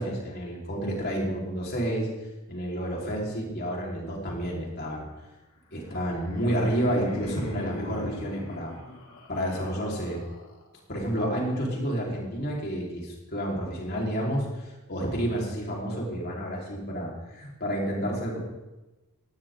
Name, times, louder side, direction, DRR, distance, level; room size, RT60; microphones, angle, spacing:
voice 1, 0.0-2.1 2.5-5.1 5.7-8.7 9.3-10.2 10.9-18.4, equal, 45° left, -2 dB, 4.5 m, -30 dB
Laughter, 5.7-10.8, left 1 dB, 65° left, 3.4 m, -41 dB
17.0 x 17.0 x 3.9 m, 1.1 s
head